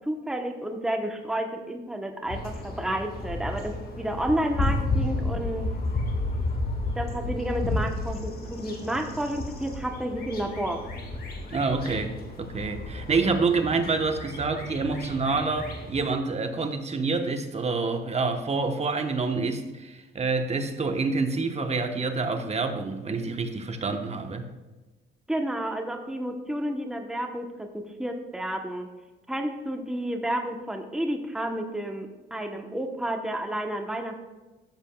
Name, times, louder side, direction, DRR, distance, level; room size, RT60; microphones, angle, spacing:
voice 1, 0.0-5.7 6.9-10.8 25.3-28.9 29.3-34.3, right 1 dB, 5° right, 4 dB, 0.9 m, -31 dB
sound 1, 2.3-16.0, left 2 dB, 50° left, 1.7 m, -32 dB
voice 2, 11.5-24.5, right 4 dB, 35° right, 6 dB, 1.0 m, -27 dB
13.5 x 7.4 x 2.3 m, 1.2 s
cardioid pair, 90°, 20 cm